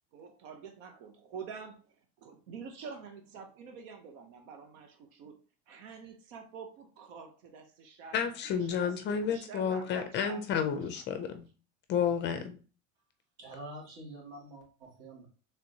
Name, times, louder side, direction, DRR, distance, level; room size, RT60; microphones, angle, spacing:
voice 1, 0.1-5.4 5.7-10.8 11.1-11.4, right 6 dB, 90° right, 5 dB, 0.9 m, -47 dB
voice 2, 8.1-11.5 11.9-12.6, left 7 dB, 30° left, 8 dB, 0.4 m, -31 dB
voice 3, 13.4-15.3, right 1 dB, 65° right, -1 dB, 2.3 m, -46 dB
4.4 x 3.4 x 2.7 m, 0.37 s
cardioid pair, 160°, 37 cm